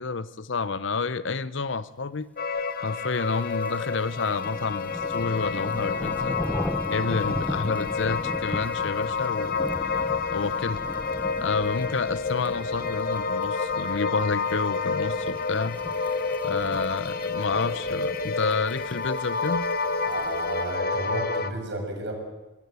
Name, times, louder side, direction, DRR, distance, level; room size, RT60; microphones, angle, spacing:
voice 1, 0.0-2.3 2.8-6.4 6.9-9.6 10.3-10.8 11.4-15.8 16.4-19.7, left 4 dB, 65° left, 16 dB, 0.8 m, -29 dB
sound 1, 2.4-21.5, left 4 dB, 50° left, 1.2 m, -29 dB
sound 2, 3.1-20.7, left 1 dB, 10° left, 0.7 m, -38 dB
voice 2, 20.0-22.1, right 1 dB, 60° right, 3 dB, 6.8 m, -33 dB
22.5 x 22.0 x 8.3 m, 1.1 s
head